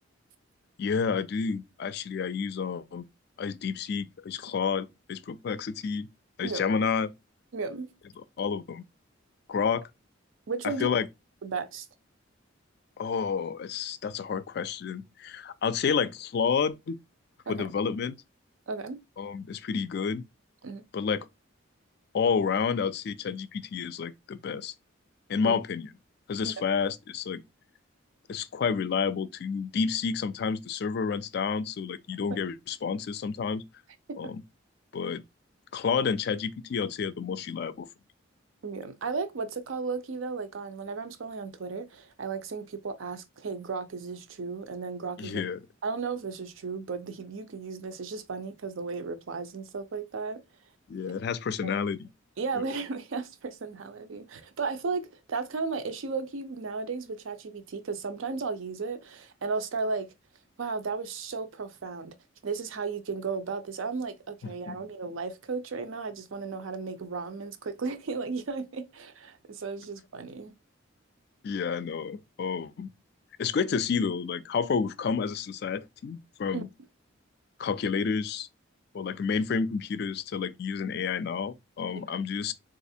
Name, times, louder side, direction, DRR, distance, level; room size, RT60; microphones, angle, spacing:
voice 1, 0.8-3.0 3.4-6.1 6.4-7.1 8.2-8.8 9.5-9.9 10.6-11.1 13.0-17.0 17.5-18.2 19.2-20.2 20.9-21.3 22.1-24.7 25.3-25.9 26.3-27.4 28.3-33.6 34.2-34.4 34.9-35.2 35.7-37.9 45.2-45.6 50.9-52.1 64.7-64.8 71.4-72.9 73.4-76.7 77.6-78.5 78.9-82.5, left 6 dB, 50° left, 0.3 m, -30 dB
voice 2, 7.5-7.9 10.5-10.9 11.4-11.9 17.5-17.7 18.7-19.0 20.6-20.8 25.4-25.5 26.4-26.5 32.3-32.4 34.1-34.3 38.6-45.4 45.8-50.4 51.1-51.2 51.6-51.8 52.4-60.1 60.6-62.1 62.4-70.5 76.5-76.6, right 4 dB, 75° right, 0.5 m, -35 dB
4.1 x 2.4 x 2.6 m
head